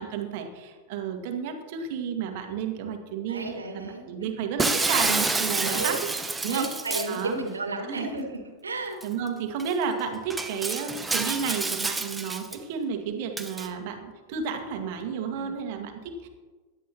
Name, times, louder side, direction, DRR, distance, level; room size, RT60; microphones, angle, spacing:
voice 1, 0.0-3.4 3.7-6.0 6.4-6.7 7.1-7.4 7.9-8.1 9.0-16.3, right 6 dB, 50° right, 4 dB, 2.0 m, -32 dB
voice 2, 3.3-4.1 5.6-5.9 6.4-9.0 15.3-15.5, right 2 dB, 75° right, 2 dB, 2.3 m, -33 dB
Shatter, 4.6-7.2 9.0-9.1 9.6-9.7 10.3-12.6 13.4-13.7, right 3 dB, 10° right, 0.8 m, -28 dB
16.5 x 11.5 x 3.0 m, 1.3 s
figure-of-eight pair, 90°, 0 cm